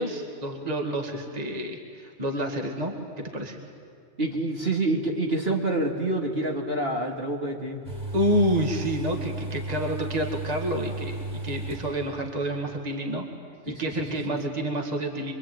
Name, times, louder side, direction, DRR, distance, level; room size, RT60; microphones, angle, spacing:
voice 1, 0.0-3.6 8.1-13.3 13.7-15.3, equal, 30° right, 2 dB, 2.3 m, -28 dB
voice 2, 4.2-7.8 13.7-14.4, right 2 dB, 45° right, 0 dB, 2.5 m, -27 dB
sound 1, 7.8-12.3 12.6-12.7, right 1 dB, 5° right, 5.1 m, -34 dB
25.0 x 24.5 x 9.4 m, 2.3 s
omnidirectional pair, 1.4 m